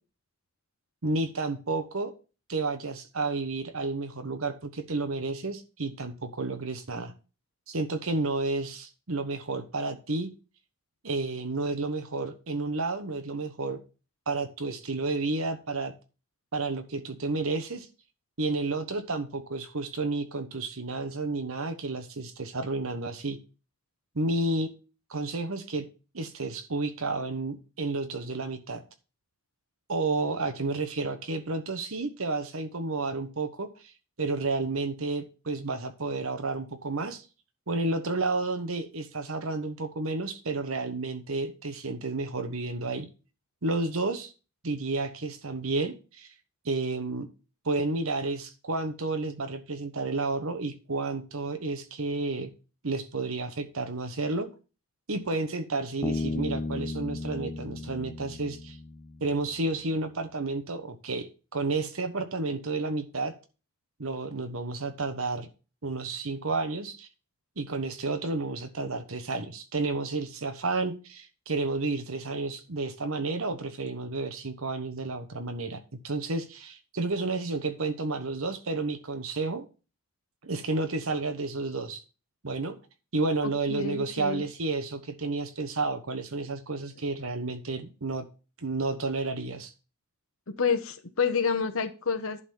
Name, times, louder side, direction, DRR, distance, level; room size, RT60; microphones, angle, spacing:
voice 1, 1.0-2.1 2.5-7.1 7.7-10.3 11.0-13.8 14.3-15.9 16.5-17.9 18.4-23.4 24.1-24.7 25.1-25.8 26.1-28.8 29.9-33.9 34.2-37.3 37.7-43.1 43.6-44.3 44.6-46.3 46.6-47.3 47.6-52.5 52.8-54.5 55.1-58.8 59.2-63.3 64.0-65.5 65.8-67.1 67.6-75.8 76.0-79.6 80.4-82.0 82.4-82.7 83.1-88.3 88.6-89.7, right 3 dB, 75° right, 1.2 m, -31 dB
Bass guitar, 56.0-59.6, left 2 dB, 20° left, 0.5 m, -34 dB
voice 2, 83.7-84.4 90.5-92.4, left 6 dB, 70° left, 1.1 m, -28 dB
11.0 x 4.2 x 7.0 m
head